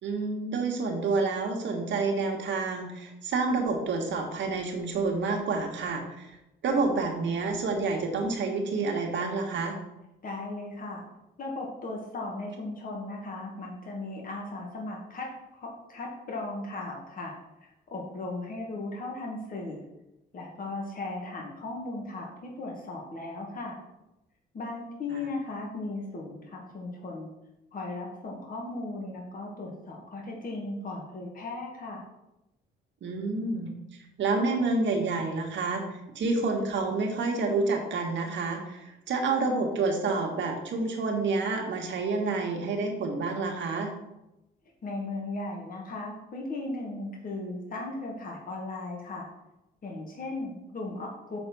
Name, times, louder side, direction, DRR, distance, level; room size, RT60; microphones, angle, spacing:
voice 1, 0.0-6.4 6.6-9.8 25.1-25.2 33.0-33.7 34.2-35.8 36.1-43.9, right 3 dB, 70° right, 2 dB, 1.6 m, -28 dB
voice 2, 10.2-11.0 11.4-19.8 20.3-23.8 24.5-27.3 27.7-32.1 44.8-49.3 49.8-51.4, left 2 dB, 45° left, -1 dB, 1.8 m, -37 dB
6.6 x 4.3 x 6.1 m, 0.91 s
cardioid pair, 90°, 20 cm